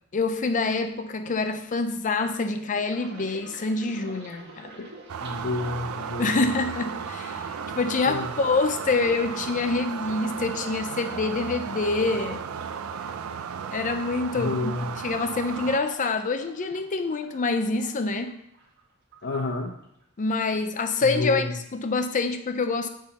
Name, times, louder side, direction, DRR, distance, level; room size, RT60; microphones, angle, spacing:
voice 1, 0.1-4.8 6.2-12.4 13.7-18.4 20.2-22.9, left 3 dB, 35° left, 9 dB, 0.5 m, -26 dB
sound 1, 2.9-18.8 19.1-20.0 20.3-20.7, right 3 dB, 55° right, 1.6 m, -45 dB
voice 2, 4.5-4.9 5.2-6.4 8.1-8.3 14.4-14.9 19.2-19.7 21.0-21.4, left 2 dB, 55° left, 0 dB, 0.8 m, -30 dB
sound 2, 5.1-15.8, right 7 dB, 70° right, 0.4 m, -35 dB
9.8 x 3.7 x 7.0 m, 0.75 s
head